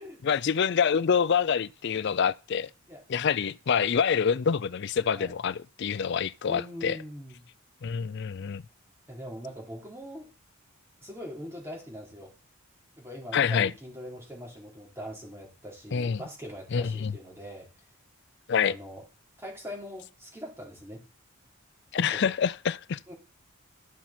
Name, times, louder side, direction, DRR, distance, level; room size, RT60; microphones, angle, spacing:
voice 1, 0.2-2.7 3.1-7.0 7.8-8.6 13.3-13.7 15.9-16.2 16.7-17.1 18.5-18.8 21.9-23.0, left 7 dB, 50° left, 0.4 m, -26 dB
voice 2, 6.5-7.5 9.1-10.3 11.0-12.3 13.0-17.9 18.6-19.0 19.4-21.1 22.0-22.3 23.1-23.2, equal, 10° right, 3.6 m, -42 dB
13.0 x 5.8 x 4.3 m
head